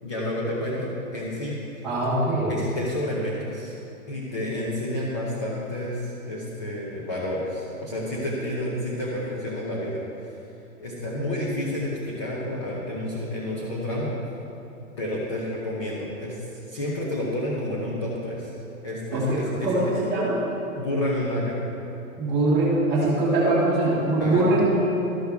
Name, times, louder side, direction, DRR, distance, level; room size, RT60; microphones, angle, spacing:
voice 1, 0.0-1.5 2.5-3.7 4.1-10.0 10.8-14.1 15.0-18.5 18.8-19.7 20.8-21.6 24.2-24.5, left 1 dB, 20° left, -6 dB, 0.7 m, -30 dB
voice 2, 1.8-2.5 19.1-20.5 22.2-24.8, right 2 dB, ahead, -16 dB, 1.0 m, -22 dB
13.0 x 6.4 x 3.4 m, 2.8 s
hypercardioid pair, 175°, 43 cm